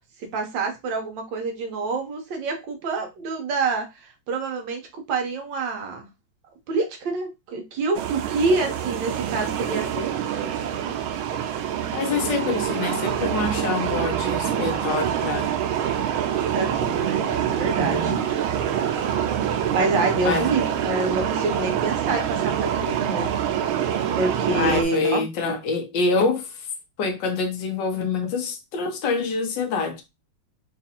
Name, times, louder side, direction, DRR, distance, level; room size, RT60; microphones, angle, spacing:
voice 1, 0.3-6.0 6.7-10.2 10.4-10.9 16.5-18.2 19.7-23.3 24.1-25.6, right 3 dB, 70° right, 1.4 m, -27 dB
sound 1, 7.9-24.8, right 9 dB, 90° right, 1.4 m, -25 dB
voice 2, 11.9-15.5 17.8-18.2 20.2-20.5 24.5-26.5 27.0-30.0, left 4 dB, 70° left, 1.4 m, -26 dB
4.0 x 2.5 x 2.7 m
omnidirectional pair, 2.2 m